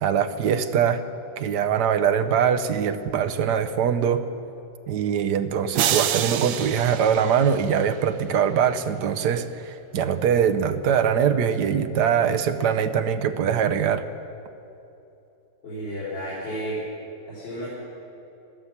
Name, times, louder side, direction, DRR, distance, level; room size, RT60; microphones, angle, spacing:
voice 1, 0.0-1.0 1.4-4.3 4.9-14.0, right 8 dB, 70° right, 9 dB, 1.3 m, -22 dB
sound 1, 5.7-8.1, right 10 dB, 85° right, 1.3 m, -27 dB
voice 2, 15.6-16.8 17.3-17.7, right 1 dB, 85° left, -9 dB, 4.7 m, -32 dB
14.5 x 12.5 x 7.2 m, 2.8 s
omnidirectional pair, 2.0 m